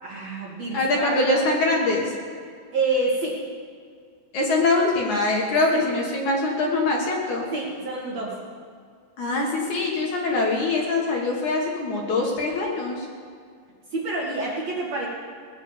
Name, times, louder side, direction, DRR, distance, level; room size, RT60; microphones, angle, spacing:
voice 1, 0.0-1.4 2.7-3.4 5.7-5.8 7.5-8.4 13.9-15.1, right 2 dB, 60° right, -4 dB, 1.7 m, -28 dB
voice 2, 0.7-2.1 4.3-7.4 9.2-13.1, left 2 dB, 65° left, -1 dB, 1.9 m, -23 dB
19.0 x 8.2 x 7.2 m, 2.1 s
omnidirectional pair, 5.6 m